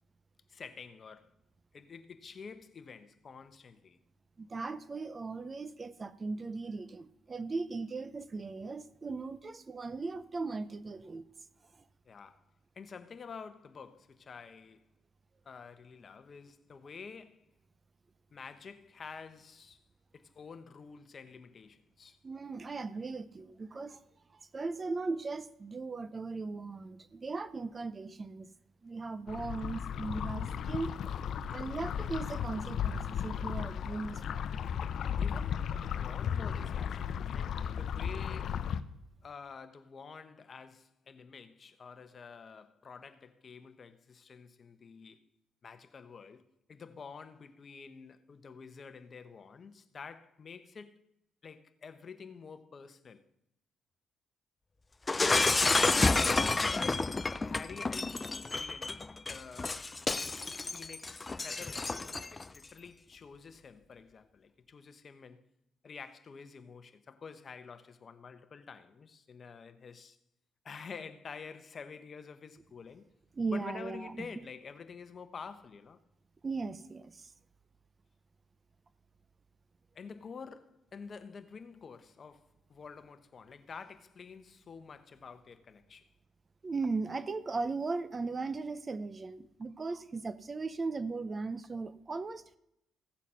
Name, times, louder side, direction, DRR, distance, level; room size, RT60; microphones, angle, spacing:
voice 1, 0.5-1.3 1.7-4.0 12.0-12.4 12.7-14.8 15.4-17.4 18.3-19.8 20.1-22.2 35.2-38.6 39.2-45.2 45.6-46.4 46.7-51.0 51.4-53.2 56.3-59.9 60.7-65.4 65.8-70.2 70.6-73.1 73.5-76.0 79.9-86.1, left 5 dB, 45° left, 1.0 m, -49 dB
voice 2, 4.4-11.2 22.2-24.0 24.5-28.5 28.8-30.9 31.5-34.5 73.4-74.4 76.4-77.3 86.6-92.6, right 3 dB, 30° right, 0.6 m, -38 dB
sound 1, 29.3-38.8, left 8 dB, 65° left, 0.6 m, -35 dB
Shatter, 55.1-62.4, left 3 dB, 25° left, 0.4 m, -30 dB
15.5 x 7.2 x 5.6 m
cardioid pair, 90°, 0 cm